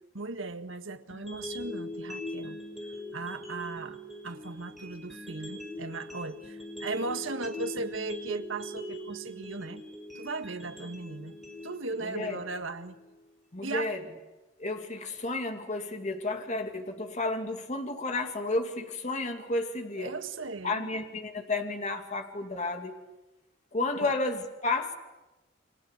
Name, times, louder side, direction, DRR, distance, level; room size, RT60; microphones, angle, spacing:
voice 1, 0.1-2.6 3.1-9.8 10.2-11.4 11.6-13.0 13.6-14.0 20.0-20.9 24.0-24.1, right 3 dB, 85° right, 1.7 m, -37 dB
sound 1, 1.1-13.1, left 1 dB, ahead, 5.8 m, -42 dB
voice 2, 12.0-12.4 13.5-14.0 14.6-20.1 20.6-22.9 23.7-24.9, left 2 dB, 35° left, 2.5 m, -32 dB
29.5 x 24.5 x 8.3 m
head